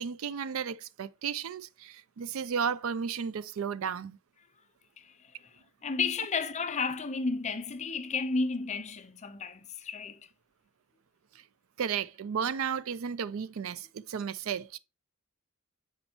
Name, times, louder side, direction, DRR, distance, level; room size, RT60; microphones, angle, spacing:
voice 1, 0.0-4.2 11.8-14.8, right 7 dB, 70° right, 0.4 m, -33 dB
voice 2, 5.0-10.2, left 4 dB, 35° left, 0.6 m, -33 dB
7.9 x 4.4 x 2.8 m
head